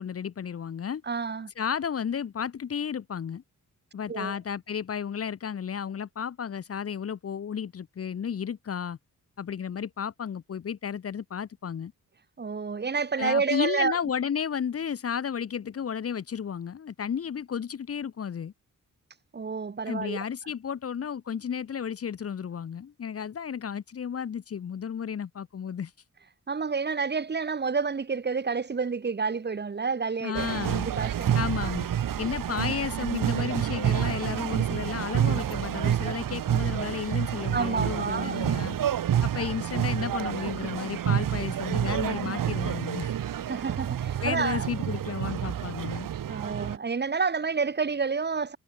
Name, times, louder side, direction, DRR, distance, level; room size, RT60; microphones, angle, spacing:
voice 1, 0.0-1.0 1.6-3.4 3.9-9.0 9.4-11.9 13.2-18.5 19.9-25.9 30.2-30.9 31.3-31.9 32.2-38.8 39.2-43.1 44.2-46.1, left 7 dB, 45° left, 1.1 m, -33 dB
voice 2, 1.1-1.5 4.1-4.4 12.4-14.0 19.3-20.2 26.5-31.4 37.5-38.4 43.5-44.7 46.3-48.6, right 5 dB, 30° right, 2.0 m, -29 dB
sound 1, 30.3-46.8, right 10 dB, 80° right, 2.0 m, -28 dB
wide cardioid pair, 165°, 33 cm